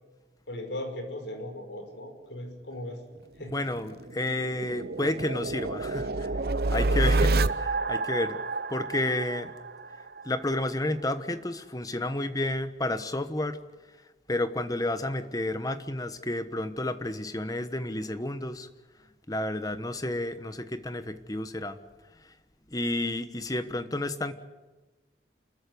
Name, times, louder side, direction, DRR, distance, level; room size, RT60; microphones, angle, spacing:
voice 1, 0.5-3.0 3.4-3.6 6.6-7.0, left 1 dB, 80° left, 5 dB, 5.5 m, -38 dB
voice 2, 3.5-6.3 6.7-8.4 8.7-9.5 10.2-13.6 14.3-18.7 19.3-21.8 22.2-22.3 22.7-24.3, left 1 dB, 20° left, 11 dB, 1.2 m, -31 dB
sound 1, 3.5-10.3, right 2 dB, 60° right, 0.8 m, -28 dB
28.5 x 14.0 x 9.6 m, 1.2 s
head